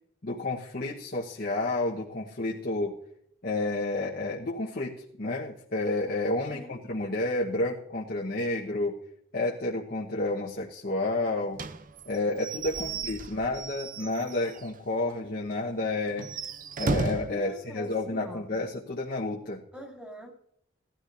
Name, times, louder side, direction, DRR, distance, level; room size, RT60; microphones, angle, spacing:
voice 1, 0.2-2.9 3.4-8.9 9.3-11.6 12.1-16.3 16.8-19.6, left 2 dB, 50° left, -3 dB, 1.2 m, -30 dB
voice 2, 6.5-6.8 12.8-13.0 17.3-18.5 19.7-20.3, equal, 5° right, -2 dB, 2.7 m, -44 dB
Slam / Squeak / Wood, 11.5-14.8 15.1-15.2 15.5-15.6 16.1-17.4, right 3 dB, 45° right, 0.6 m, -34 dB
18.5 x 13.0 x 2.7 m, 0.74 s
head